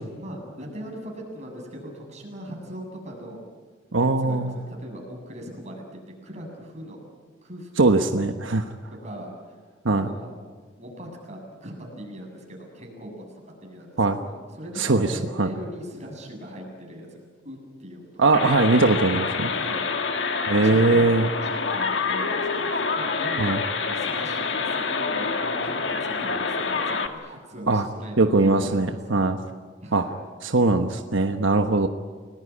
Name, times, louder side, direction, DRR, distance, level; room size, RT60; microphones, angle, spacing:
voice 1, 0.2-3.4 4.2-7.0 7.4-7.7 8.3-8.4 9.0-9.6 10.0-10.3 10.8-18.2 19.5-19.8 20.6-23.5 23.8-29.0 29.8-30.1, equal, 35° right, 1 dB, 7.4 m, -39 dB
voice 2, 3.9-4.6 7.8-8.7 9.8-10.1 14.0-14.2 14.8-15.5 18.2-19.5 20.5-21.2 23.4-23.6 27.7-27.8 28.2-29.4 29.9-30.0 30.4-31.9, right 3 dB, 85° right, 6 dB, 1.2 m, -21 dB
sound 1, 18.3-27.1, left 4 dB, 65° left, 1.9 m, -27 dB
29.5 x 19.5 x 9.7 m, 1.5 s
head